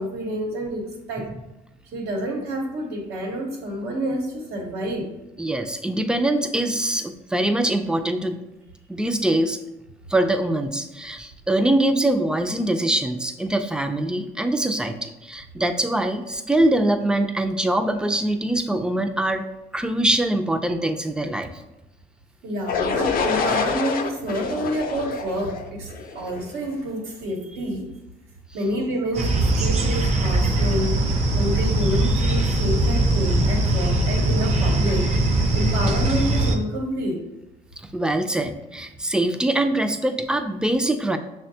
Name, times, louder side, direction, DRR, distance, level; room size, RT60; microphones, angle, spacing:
voice 1, 0.0-1.3 1.9-5.1 22.4-27.9 28.5-31.0 31.3-35.1 35.5-37.2, equal, 85° right, 0 dB, 1.0 m, -28 dB
voice 2, 5.4-8.4 8.9-9.6 10.1-19.4 19.7-21.5 37.9-41.2, right 1 dB, 5° right, 7 dB, 0.3 m, -23 dB
sound 1, 22.7-26.6, left 5 dB, 65° left, 0.5 m, -26 dB
sound 2, 29.1-36.6, right 1 dB, 45° right, 0.6 m, -21 dB
6.1 x 2.2 x 2.7 m, 0.96 s
cardioid pair, 90°, 16 cm